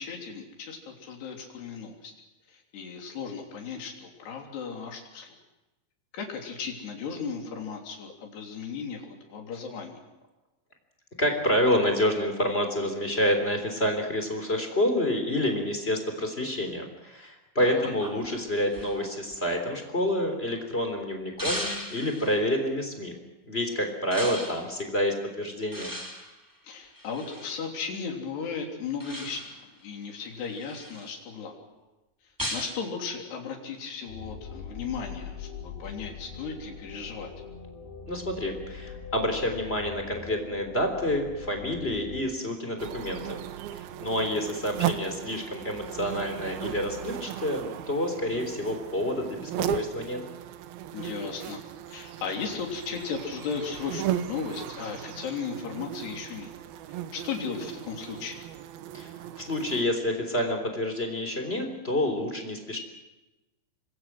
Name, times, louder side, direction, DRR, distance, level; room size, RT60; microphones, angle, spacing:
voice 1, 0.0-2.1 2.5-5.4 6.1-10.0 17.6-17.9 26.6-31.6 32.5-37.3 50.9-51.6 51.9-56.5 57.1-58.4, left 5 dB, 65° left, 3 dB, 5.3 m, -36 dB
voice 2, 11.2-23.1 23.4-25.9 38.1-43.4 43.7-50.2 58.9-59.1 59.4-62.8, left 1 dB, 15° left, 4 dB, 3.1 m, -28 dB
sound 1, 18.0-20.6 21.4-22.4 24.1-24.6 25.7-27.6 29.0-29.7 30.2-31.1 32.4-32.8, equal, 5° right, 3.0 m, -37 dB
sound 2, 34.1-42.2, left 6 dB, 85° left, 7.2 m, -42 dB
sound 3, 42.8-59.8, right 11 dB, 70° right, 2.4 m, -36 dB
26.5 x 23.5 x 6.2 m, 1.0 s
omnidirectional pair, 5.3 m